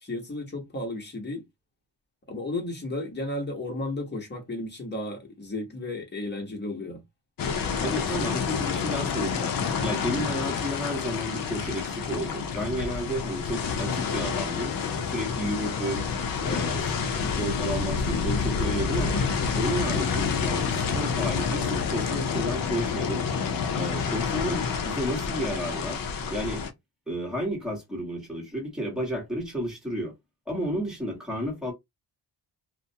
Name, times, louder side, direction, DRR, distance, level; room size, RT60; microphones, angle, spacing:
voice 1, 0.0-1.4 2.3-7.0, left 2 dB, 25° left, 1.0 m, -33 dB
sound 1, 7.4-26.7, left 5 dB, 50° left, 0.6 m, -28 dB
voice 2, 7.8-14.7 15.1-16.0 16.4-16.9 17.2-19.2 19.5-23.2 23.7-26.0 26.3-26.6 27.1-30.1 30.5-31.7, equal, ahead, 1.2 m, -32 dB
2.4 x 2.1 x 2.7 m
wide cardioid pair, 130°, 46 cm